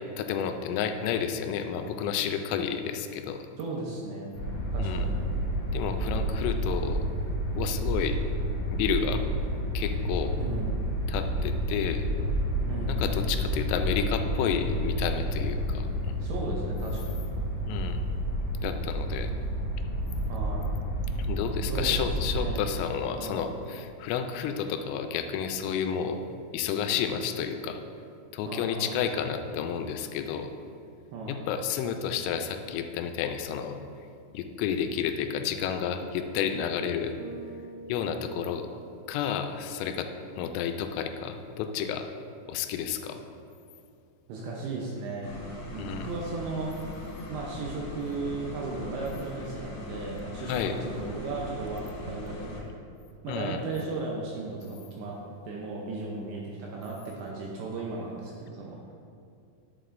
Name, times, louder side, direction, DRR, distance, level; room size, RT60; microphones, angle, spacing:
voice 1, 0.2-3.4 4.8-5.1 5.7-7.0 7.6-8.2 8.7-9.2 9.7-10.4 11.1-12.1 12.9-16.2 17.7-18.0 18.6-19.3 21.3-26.3 26.5-27.8 28.3-30.5 31.3-33.8 34.3-37.1 37.9-38.7 39.1-40.1 40.4-42.1 42.5-43.2 45.8-46.1 50.4-50.8 53.3-53.6, left 8 dB, 85° left, 6 dB, 3.1 m, -31 dB
voice 2, 3.6-4.3 4.7-5.1 10.4-10.8 12.7-13.2 16.2-17.3 20.3-20.7 21.7-22.0 22.4-22.6 23.2-23.4 28.5-28.9 31.1-31.4 44.3-46.7 47.3-52.7 53.2-55.2 55.4-58.9, right 3 dB, 80° right, -2 dB, 2.6 m, -36 dB
sound 1, 4.3-22.5, equal, 50° left, 1.9 m, -30 dB
Bass guitar, 37.2-39.5, right 3 dB, 55° right, 3.5 m, -46 dB
Kitchen fan, 45.2-52.6, left 2 dB, 65° left, 3.0 m, -40 dB
11.0 x 7.8 x 2.6 m, 2.5 s
omnidirectional pair, 5.8 m